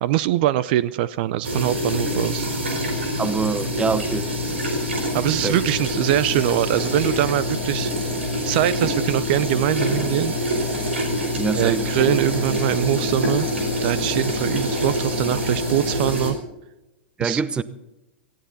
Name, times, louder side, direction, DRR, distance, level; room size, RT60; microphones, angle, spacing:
voice 1, 0.0-2.5 5.1-7.9 8.4-10.4 11.5-13.5 13.8-16.4 17.2-17.4, right 14 dB, 55° right, 0.5 m, -23 dB
sound 1, 1.4-16.3, left 1 dB, 90° right, 4.2 m, -25 dB
voice 2, 3.2-4.3 5.4-5.6 11.3-11.8 17.2-17.6, right 5 dB, 15° right, 0.9 m, -24 dB
18.5 x 15.0 x 4.0 m
hypercardioid pair, 105°, 6 cm